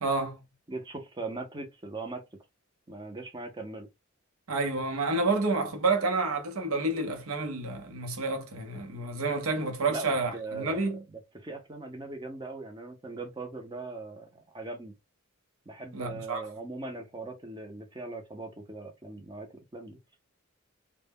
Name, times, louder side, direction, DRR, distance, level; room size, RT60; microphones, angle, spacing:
voice 1, 0.0-0.4 4.5-11.0 15.9-16.4, right 3 dB, 85° right, 0.7 m, -29 dB
voice 2, 0.7-2.2 2.9-3.9 9.9-14.9 15.7-20.0, right 3 dB, 20° right, 0.5 m, -40 dB
2.1 x 2.0 x 3.4 m
head